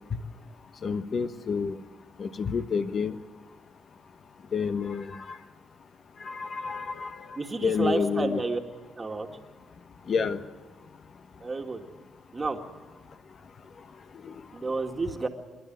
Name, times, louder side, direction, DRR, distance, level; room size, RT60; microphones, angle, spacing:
voice 1, 0.8-1.8 2.2-3.2 4.5-5.4 6.2-8.4 10.1-10.4 14.2-14.3, left 5 dB, 50° left, 11 dB, 1.2 m, -29 dB
voice 2, 7.4-8.6 9.0-9.3 11.4-11.9 12.3-12.6 14.5-15.3, right 3 dB, 25° right, 4 dB, 2.0 m, -30 dB
26.0 x 11.5 x 9.4 m, 1.4 s
cardioid pair, 90°, 0 cm